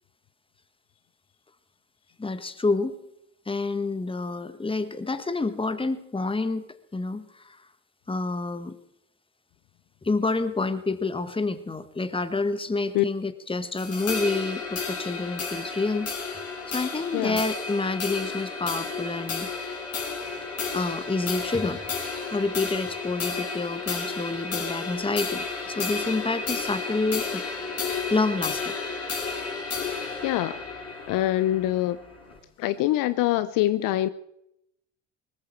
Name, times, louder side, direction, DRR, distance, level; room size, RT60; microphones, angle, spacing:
voice 1, 2.2-3.0 3.4-6.6 6.9-7.6 8.1-8.7 10.0-16.1 16.7-19.5 20.7-21.8 22.3-27.4 28.1-28.7, left 3 dB, 15° left, 11 dB, 1.5 m, -28 dB
sound 1, 13.8-32.4, left 4 dB, 40° left, 5.3 m, -32 dB
voice 2, 30.2-30.6 31.1-32.0 32.6-34.1, left 14 dB, 60° left, 14 dB, 0.7 m, -24 dB
19.5 x 14.0 x 4.6 m, 0.79 s
hypercardioid pair, 65°, 38 cm